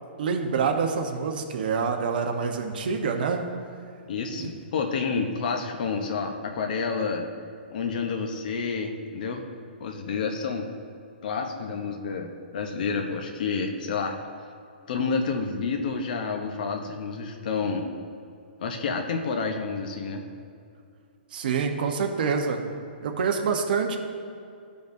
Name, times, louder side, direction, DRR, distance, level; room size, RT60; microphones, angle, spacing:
voice 1, 0.2-3.4 4.3-4.5 21.3-22.6 23.0-24.0, right 5 dB, 55° right, 4 dB, 0.9 m, -26 dB
voice 2, 4.1-7.3 7.7-9.5 9.8-10.7 11.2-14.2 14.9-17.9 18.6-20.2, left 5 dB, 50° left, 3 dB, 0.8 m, -29 dB
14.5 x 5.2 x 2.6 m, 2.4 s
hypercardioid pair, 165°, 6 cm